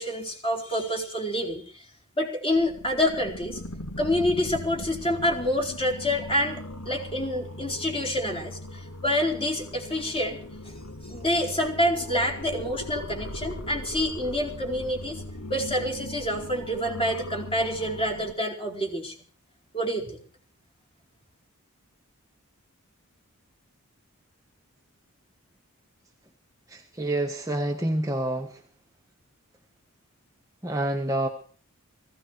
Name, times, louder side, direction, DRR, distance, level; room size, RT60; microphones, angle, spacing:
voice 1, 0.0-1.8 2.2-3.6 4.0-10.4 11.1-15.2 15.5-19.1 19.7-20.2, left 1 dB, 25° left, 1 dB, 4.6 m, -27 dB
sound 1, 2.5-18.3, left 1 dB, 75° left, 2.4 m, -39 dB
voice 2, 26.7-28.6 30.6-31.3, right 1 dB, 15° right, 2 dB, 1.4 m, -28 dB
18.5 x 16.5 x 4.6 m, 0.43 s
head